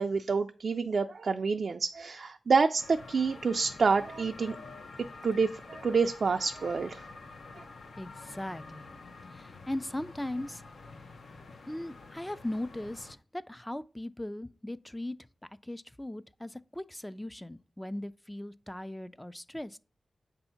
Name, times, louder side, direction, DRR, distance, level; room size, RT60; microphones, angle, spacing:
voice 1, 0.0-4.6 5.2-7.1 7.5-7.6, right 4 dB, 70° right, 0.3 m, -28 dB
sound 1, 2.8-13.2, left 3 dB, 85° left, 0.6 m, -48 dB
voice 2, 8.0-8.9 9.3-10.6 11.7-15.2 15.6-19.8, left 1 dB, 10° left, 0.3 m, -38 dB
7.8 x 2.7 x 5.5 m
cardioid pair, 65°, 0 cm